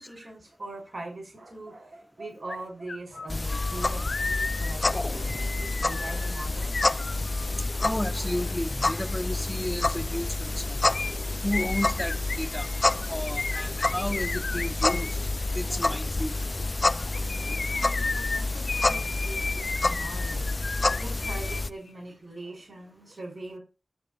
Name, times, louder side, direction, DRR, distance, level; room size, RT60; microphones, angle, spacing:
voice 1, 0.0-6.8 7.1-7.3 17.1-20.5 21.0-23.6, right 2 dB, 55° right, 5.8 m, -42 dB
sound 1, 2.5-2.6 2.9-7.6 10.9-15.1 17.0-21.6 21.9-22.0, left 4 dB, 80° left, 1.1 m, -34 dB
sound 2, 3.3-21.7, left 2 dB, 40° left, 0.7 m, -28 dB
voice 2, 7.8-10.8 11.4-12.7 13.1-15.2 15.5-16.4, left 1 dB, 10° left, 1.0 m, -32 dB
13.0 x 4.4 x 8.6 m
wide cardioid pair, 60°, 0 cm